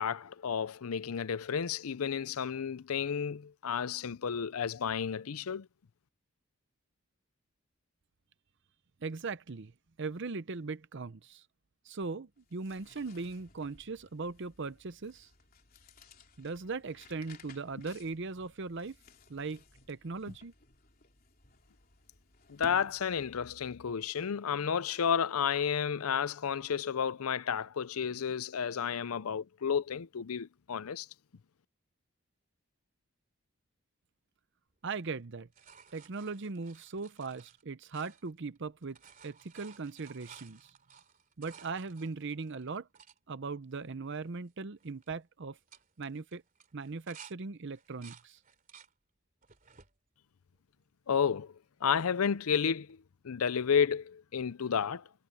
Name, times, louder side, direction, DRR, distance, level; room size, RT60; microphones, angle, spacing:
voice 1, 0.0-5.7 22.5-31.1 51.1-51.5 51.8-55.0, left 7 dB, 85° left, 0.5 m, -31 dB
voice 2, 9.0-9.7 10.0-11.4 11.9-15.3 16.4-19.0 19.3-20.5 34.8-35.5 35.9-39.0 39.2-40.7 41.4-42.9 43.3-45.6 46.0-46.4 46.7-48.4, right 4 dB, 55° right, 0.7 m, -39 dB
sound 1, 12.4-23.6, left 3 dB, 45° left, 3.6 m, -58 dB
sound 2, 34.9-38.6 38.8-43.2 43.8-43.9 44.1-44.5 44.8-45.1 45.5-47.4 47.7-48.9 49.4-49.9 50.5-51.3 52.9-53.0, right 7 dB, 40° right, 2.8 m, -56 dB
head